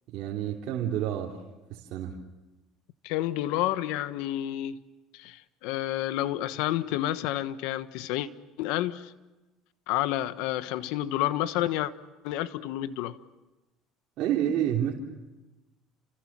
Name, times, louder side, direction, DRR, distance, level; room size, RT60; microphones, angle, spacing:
voice 1, 0.1-1.4 1.7-2.2 14.2-14.9, right 10 dB, 65° right, 3.3 m, -29 dB
voice 2, 3.0-4.8 5.1-8.3 8.6-9.1 9.9-11.9 12.2-13.2, left 14 dB, 80° left, 1.3 m, -29 dB
29.5 x 25.0 x 7.5 m
supercardioid pair, 105°, 0 cm